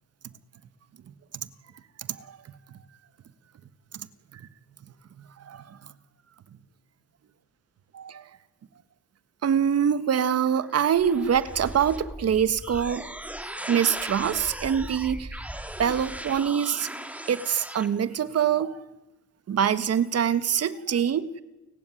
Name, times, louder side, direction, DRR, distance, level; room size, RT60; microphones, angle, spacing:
voice 1, 2.0-2.4 2.7-2.8 3.9-4.1 4.3-4.5 5.4-5.8 7.9-8.3 9.4-13.0 13.6-15.4 15.8-16.9 17.3-18.8 19.5-21.3, right 8 dB, 55° right, 13 dB, 1.5 m, -25 dB
sound 1, 10.4-17.9, right 1 dB, 5° right, 2.1 m, -38 dB
30.0 x 15.5 x 10.0 m, 1.0 s
cardioid pair, 90°, 30 cm